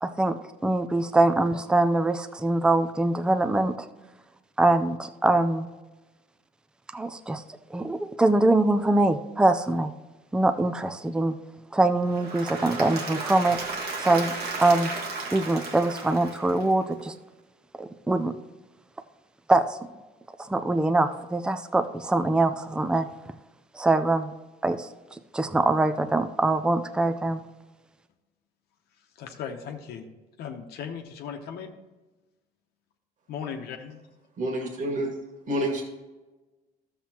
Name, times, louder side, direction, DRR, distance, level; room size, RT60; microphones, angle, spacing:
voice 1, 0.0-3.9 4.6-5.7 6.9-7.4 7.7-9.9 10.3-11.4 11.7-13.6 14.0-14.3 14.6-14.9 15.3-17.1 17.8-18.4 19.5-19.8 20.4-23.1 23.7-24.3 24.6-27.4, right 2 dB, 5° right, 9 dB, 0.4 m, -23 dB
Applause / Crowd, 12.0-17.0, right 3 dB, 70° right, 1.7 m, -34 dB
voice 2, 29.0-30.1 30.4-31.7 33.3-34.0, left 7 dB, 70° left, 4 dB, 0.9 m, -37 dB
voice 3, 34.4-35.1 35.5-35.8, right 1 dB, 50° right, 2 dB, 1.9 m, -28 dB
12.5 x 7.1 x 2.9 m, 1.2 s
cardioid pair, 110°, 17 cm